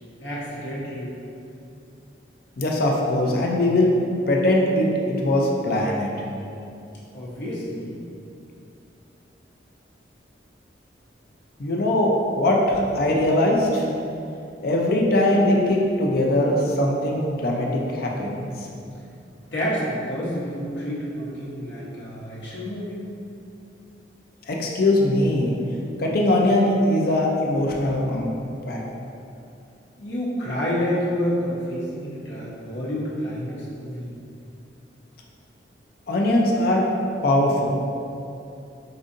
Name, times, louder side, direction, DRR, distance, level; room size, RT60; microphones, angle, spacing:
voice 1, 0.2-1.1 7.1-8.0 19.5-23.0 30.0-34.1, equal, 75° left, -7 dB, 0.9 m, -29 dB
voice 2, 2.6-3.9 4.3-6.1 11.6-13.8 14.6-18.7 24.5-25.5 26.0-28.3 28.7-28.8 36.1-36.8 37.2-37.7, left 1 dB, 55° left, -1 dB, 0.5 m, -21 dB
5.0 x 2.6 x 2.5 m, 2.6 s
head